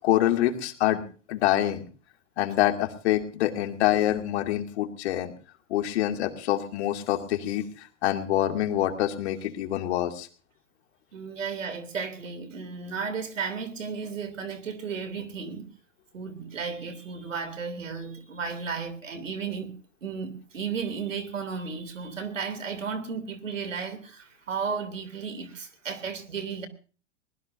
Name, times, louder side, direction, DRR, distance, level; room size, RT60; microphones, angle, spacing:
voice 1, 0.0-1.0 1.3-1.8 2.4-5.3 5.7-10.3, left 13 dB, 60° left, 2.5 m, -26 dB
voice 2, 11.1-15.7 16.1-19.8 20.0-26.7, right 5 dB, 80° right, 3.1 m, -34 dB
22.5 x 20.0 x 2.7 m
hypercardioid pair, 105°, 38 cm